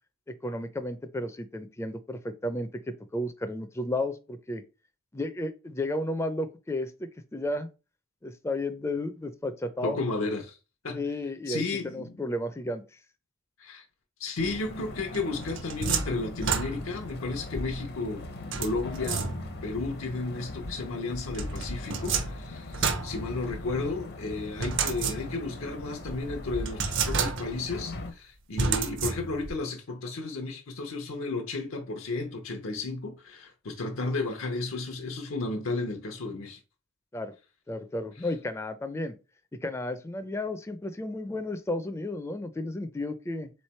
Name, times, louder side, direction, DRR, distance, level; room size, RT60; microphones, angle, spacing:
voice 1, 0.3-2.7 3.1-4.6 5.1-7.7 8.2-10.0 10.9-12.8 37.1-37.3 37.7-39.2 39.6-43.5, left 1 dB, 15° left, 0.4 m, -33 dB
voice 2, 9.8-10.6 10.8-11.0 11.5-12.2 13.6-13.8 14.2-18.2 18.6-19.3 19.6-36.6, left 3 dB, 85° left, 0.8 m, -33 dB
sound 1, 14.4-28.1, left 2 dB, 50° left, 0.6 m, -40 dB
sound 2, 15.1-17.1 18.5-19.7 21.3-23.9 24.6-25.6 26.1-26.2 26.7-27.7 28.6-29.6, right 5 dB, 65° right, 0.7 m, -30 dB
3.6 x 3.2 x 4.2 m
head